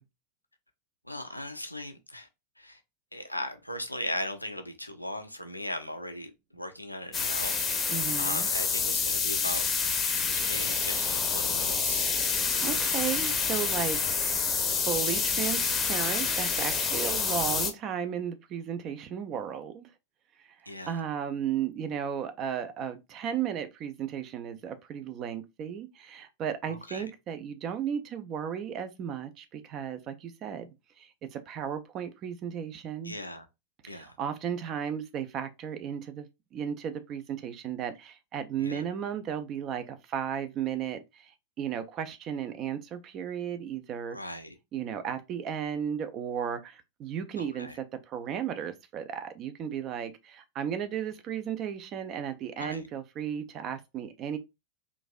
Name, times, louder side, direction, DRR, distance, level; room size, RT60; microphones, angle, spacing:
voice 1, 1.0-2.3 2.6-2.8 3.1-9.7 10.5-12.1 20.7-21.0 26.7-27.1 33.0-33.5 33.9-34.2 38.6-38.8 44.1-44.5 47.4-47.8 52.6-52.8, left 1 dB, 90° left, 0.5 m, -38 dB
sound 1, 7.1-17.7, left 5 dB, 20° left, 0.7 m, -28 dB
voice 2, 7.9-8.5 12.6-14.0 14.8-19.9 20.9-30.7 31.0-33.1 33.8-41.3 41.6-44.2 44.7-54.4, right 8 dB, 35° right, 0.5 m, -34 dB
3.9 x 2.6 x 2.3 m
figure-of-eight pair, 90°, 0 cm